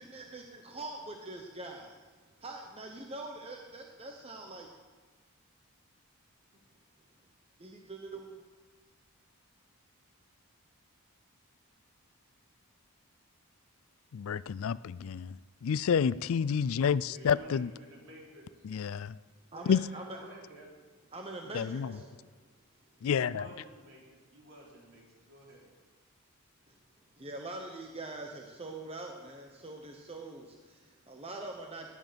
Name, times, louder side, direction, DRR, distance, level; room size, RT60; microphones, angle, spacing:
voice 1, 0.0-2.0 2.4-4.7 7.6-8.4 19.5-20.2 21.1-21.8 26.7-26.8 27.2-31.9, right 2 dB, 25° right, 2 dB, 1.0 m, -43 dB
voice 2, 14.1-15.4 15.6-17.7 18.6-19.1 19.7-19.8 21.5-21.9 23.0-23.5, left 7 dB, 65° left, 19 dB, 0.4 m, -29 dB
voice 3, 17.1-18.6 19.5-20.7 21.8-22.0 23.0-25.7, equal, 60° right, -3 dB, 4.2 m, -51 dB
18.0 x 10.5 x 5.2 m, 1.4 s
head